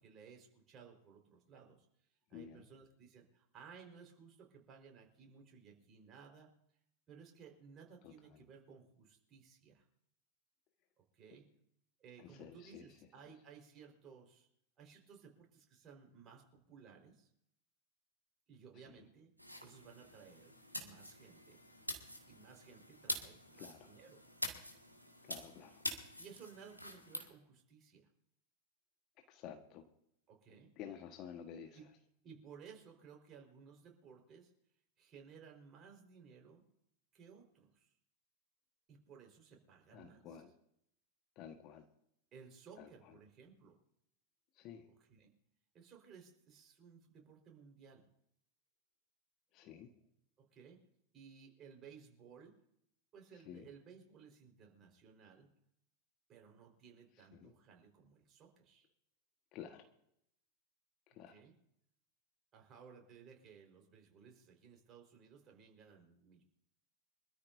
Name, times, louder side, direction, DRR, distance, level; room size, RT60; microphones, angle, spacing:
voice 1, 0.0-1.9 2.3-6.5 7.1-9.9 11.1-11.5 12.0-14.5 14.8-17.3 18.5-19.3 19.6-21.6 22.3-24.2 26.2-28.1 30.3-30.7 31.7-31.8 32.2-34.5 35.0-36.6 37.1-37.9 38.9-40.4 42.3-43.8 44.9-45.3 45.7-48.1 50.4-50.8 51.1-52.6 53.1-55.5 56.3-58.9 61.3-61.5 62.5-66.4, right 6 dB, 30° right, 2 dB, 4.5 m, -58 dB
voice 2, 2.3-2.6 8.0-8.1 12.2-12.9 23.6-23.9 25.2-25.8 29.3-29.8 30.8-31.8 39.9-40.5 41.4-41.9 42.8-42.9 44.6-44.8 49.5-49.9 53.5-53.7 57.3-57.5 59.5-59.9 61.1-61.3, left 8 dB, 40° left, 6 dB, 1.4 m, -51 dB
sound 1, 19.4-27.3, left 1 dB, 90° left, 1.9 m, -46 dB
25.5 x 13.5 x 2.7 m, 0.75 s
figure-of-eight pair, 90°, 0 cm